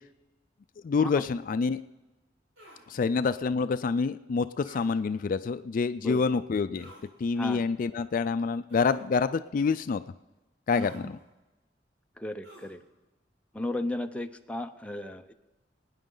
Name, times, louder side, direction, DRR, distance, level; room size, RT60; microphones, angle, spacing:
voice 1, 0.8-1.8 2.9-6.9 7.2-10.0 10.7-11.2, left 5 dB, 50° left, 12 dB, 0.3 m, -27 dB
sound 1, 2.6-2.8 4.6-4.9 6.7-7.1 8.7-9.0 10.7-11.0 12.4-12.8, equal, 85° right, 4.7 m, -50 dB
voice 2, 10.8-11.1 12.2-12.8 13.5-15.3, left 1 dB, 5° left, 6 dB, 0.6 m, -35 dB
22.5 x 9.8 x 3.9 m, 1.1 s
head